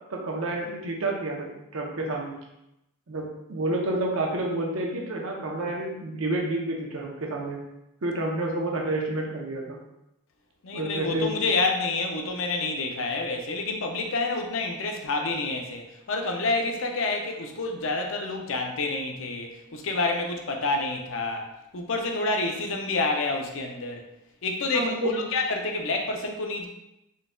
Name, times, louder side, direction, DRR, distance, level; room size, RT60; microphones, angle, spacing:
voice 1, 0.1-2.4 3.1-7.6 8.0-9.8 10.7-11.3 24.7-25.3, right 2 dB, 65° right, -1 dB, 0.7 m, -29 dB
voice 2, 10.6-21.5 21.7-24.0 24.4-26.7, left 3 dB, 60° left, 3 dB, 0.5 m, -28 dB
3.9 x 3.7 x 2.2 m, 0.87 s
head